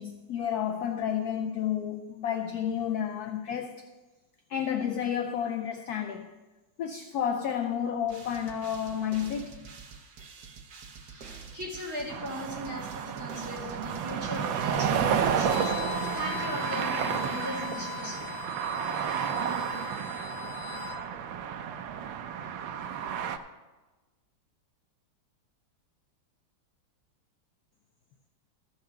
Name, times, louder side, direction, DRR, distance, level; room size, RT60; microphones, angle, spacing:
voice 1, 0.0-3.9 4.5-6.3 6.8-9.6, left 8 dB, 70° left, 0.9 m, -31 dB
sound 1, 8.1-16.9, right 5 dB, 55° right, 1.3 m, -48 dB
voice 2, 11.0-18.4, equal, 10° right, 2.6 m, -39 dB
sound 2, 12.1-23.4, right 8 dB, 80° right, 1.4 m, -31 dB
Bowed string instrument, 15.3-21.0, left 12 dB, 90° left, 2.0 m, -40 dB
14.5 x 4.8 x 6.5 m
omnidirectional pair, 2.2 m